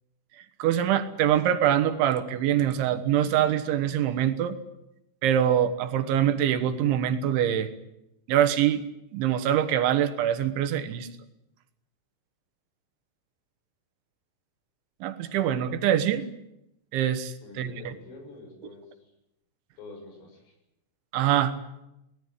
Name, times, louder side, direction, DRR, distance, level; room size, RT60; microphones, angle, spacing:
voice 1, 0.6-4.6 5.2-7.7 8.3-8.8 9.1-11.1 15.0-16.3 16.9-17.9 21.1-21.6, right 10 dB, 70° right, 10 dB, 3.6 m, -24 dB
voice 2, 17.4-18.8 19.8-20.5, left 3 dB, 80° left, 2 dB, 9.2 m, -46 dB
22.5 x 19.0 x 9.6 m, 0.87 s
omnidirectional pair, 5.8 m